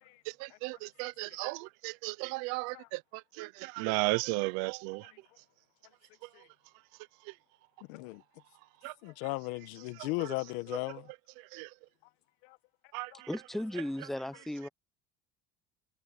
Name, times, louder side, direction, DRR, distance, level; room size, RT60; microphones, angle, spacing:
voice 1, 0.4-3.0 3.4-5.1 8.8-8.9 11.5-11.7 12.9-13.3, right 25 dB, 65° right, 0.8 m, -34 dB
voice 2, 7.9-8.2 9.0-11.1 12.4-12.6 13.1-13.2, left 23 dB, 90° left, 1.5 m, -37 dB
voice 3, 13.3-14.7, left 1 dB, ahead, 0.7 m, -36 dB
cardioid pair, 180°, 32 cm